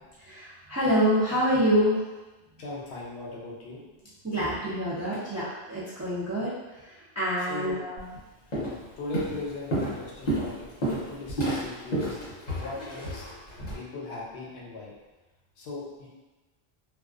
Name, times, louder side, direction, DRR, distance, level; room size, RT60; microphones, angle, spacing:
voice 1, 0.2-2.1 4.2-8.1, equal, 25° right, -10 dB, 0.4 m, -27 dB
voice 2, 2.6-3.8 7.5-7.8 9.0-10.7 11.1-12.2 12.6-13.2 13.7-14.9 15.6-16.1, left 3 dB, 85° left, -4 dB, 0.9 m, -38 dB
Walk footsteps, 8.0-8.2 8.5-8.8 9.1-13.7, right 1 dB, 45° left, 0.9 m, -30 dB
2.3 x 2.2 x 2.4 m, 1.1 s
omnidirectional pair, 1.1 m